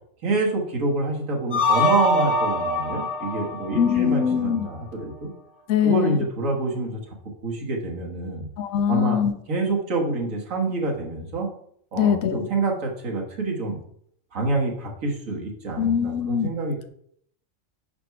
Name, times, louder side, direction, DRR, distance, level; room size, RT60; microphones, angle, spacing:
voice 1, 0.2-5.3 5.8-7.0 7.4-8.5 8.9-9.2 9.5-11.5 11.9-13.8 14.3-16.9, right 2 dB, 75° right, 0 dB, 1.8 m, -27 dB
sound 1, 1.5-4.6, left 1 dB, 55° left, 1.5 m, -24 dB
voice 2, 3.7-4.7 5.7-6.2 8.6-9.3 12.0-12.5 15.8-16.5, left 8 dB, 85° left, 9 dB, 1.1 m, -22 dB
5.0 x 4.5 x 5.8 m, 0.66 s
omnidirectional pair, 1.4 m